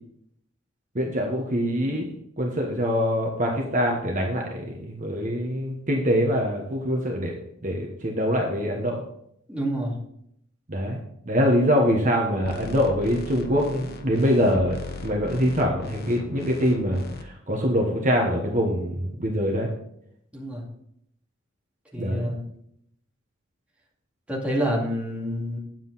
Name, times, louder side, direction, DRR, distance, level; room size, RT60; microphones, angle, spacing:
voice 1, 0.9-2.1 2.4-7.4 7.6-9.0 10.7-11.0 11.3-19.7 22.0-22.3, equal, 40° right, 0 dB, 1.2 m, -24 dB
voice 2, 9.5-9.9 20.3-20.6 21.9-22.4 24.3-25.6, equal, 5° right, -4 dB, 2.3 m, -27 dB
sound 1, 12.4-17.2, left 1 dB, 50° left, 1.0 m, -38 dB
9.3 x 7.6 x 4.0 m, 0.73 s
head